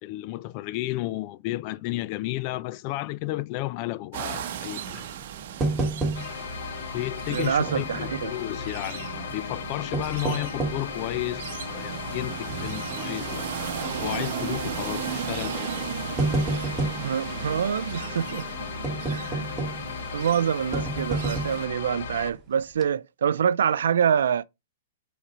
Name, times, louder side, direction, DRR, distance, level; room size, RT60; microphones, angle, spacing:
voice 1, 0.0-5.1 6.9-13.5 14.0-15.9, left 17 dB, 35° left, 0.3 m, -32 dB
sound 1, 4.1-21.7, right 9 dB, 55° right, 0.9 m, -36 dB
sound 2, 5.6-6.6 6.9-7.0 7.7-8.3 9.7-10.9 11.5-11.6 12.2-12.5 12.8-12.9 14.0-14.3 15.2-15.4 15.8-17.1 18.8-20.0 20.7-21.7 22.2-22.4 22.7-22.8, right 2 dB, 15° right, 1.1 m, -29 dB
sound 3, 6.1-22.3, left 6 dB, 65° left, 1.1 m, -36 dB
voice 2, 7.3-8.3 17.0-18.5 19.1-19.5 20.1-24.4, right 8 dB, 80° right, 0.4 m, -26 dB
5.8 x 4.0 x 4.2 m
hypercardioid pair, 155°, 0 cm